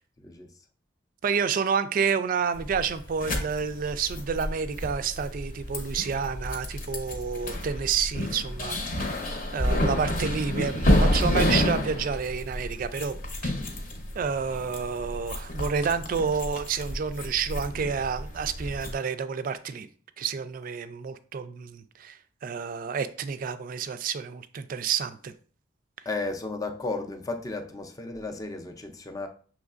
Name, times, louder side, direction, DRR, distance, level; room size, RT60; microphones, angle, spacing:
voice 1, 0.2-0.5 26.0-29.3, left 3 dB, 20° left, 0.5 m, -34 dB
voice 2, 1.2-9.3 9.5-13.1 13.4-13.5 14.2-19.9 20.2-25.3, right 6 dB, 45° right, 0.3 m, -29 dB
sound 1, 2.6-18.9, left 1 dB, 45° left, 0.8 m, -29 dB
6.2 x 3.1 x 2.4 m
head